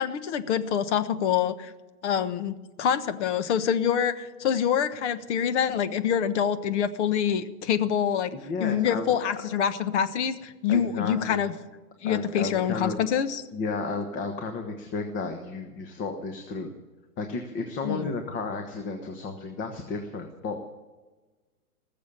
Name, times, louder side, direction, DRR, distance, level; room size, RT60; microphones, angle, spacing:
voice 1, 0.0-1.7 2.0-8.3 8.6-11.5 12.0-13.4 17.8-18.1, left 8 dB, 50° left, 11 dB, 1.3 m, -26 dB
voice 2, 8.3-9.2 10.7-11.5 12.0-13.0 13.5-16.7 17.2-20.6, left 3 dB, 25° left, 5 dB, 1.4 m, -33 dB
18.5 x 7.4 x 8.7 m, 1.2 s
hypercardioid pair, 125°, 45 cm